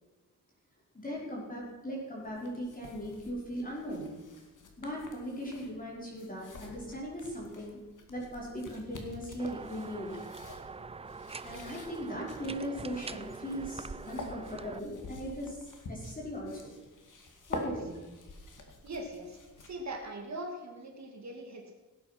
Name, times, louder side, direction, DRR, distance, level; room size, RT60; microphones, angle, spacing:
voice 1, 0.9-4.0 4.8-7.8 8.1-10.1 11.4-16.7 17.5-17.9, equal, 25° left, -4 dB, 5.0 m, -39 dB
sound 1, 2.2-20.0, left 2 dB, 65° left, 2.3 m, -47 dB
sound 2, 9.4-14.8, right 4 dB, 20° right, 0.3 m, -44 dB
voice 2, 18.8-21.7, right 1 dB, 55° right, 2 dB, 2.4 m, -41 dB
17.5 x 8.7 x 6.0 m, 1.2 s
wide cardioid pair, 160°, 33 cm